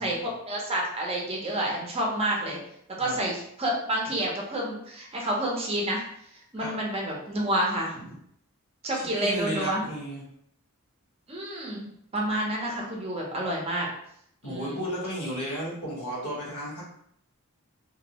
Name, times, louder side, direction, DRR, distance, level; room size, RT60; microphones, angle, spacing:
voice 1, 0.0-2.6 3.0-6.0 6.5-8.1 8.8-9.8 11.3-11.9 12.1-13.9 14.4-14.8, right 1 dB, 25° right, -2 dB, 0.5 m, -29 dB
voice 2, 8.9-10.2 14.4-16.8, equal, 80° left, -5 dB, 1.2 m, -33 dB
2.6 x 2.0 x 2.8 m, 0.71 s
head